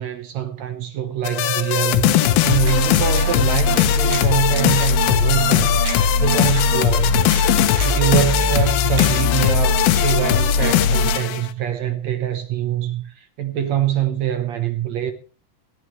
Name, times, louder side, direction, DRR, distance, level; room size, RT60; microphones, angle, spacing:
voice 1, 0.0-2.1 2.4-5.8 6.2-7.2 7.8-15.1, right 10 dB, 70° right, 1.7 m, -24 dB
sound 1, 1.2-11.5, left 7 dB, 85° left, 2.9 m, -18 dB
sound 2, 2.7-2.8 3.2-3.3 3.8-4.4 4.8-4.9 5.4-5.5 5.9-6.0 6.6-6.7 7.3-7.4 7.8-8.0 8.4-8.7 9.0-9.5 9.9-10.4 10.6-10.7, right 3 dB, 50° right, 6.2 m, -33 dB
20.5 x 12.5 x 3.2 m
omnidirectional pair, 4.2 m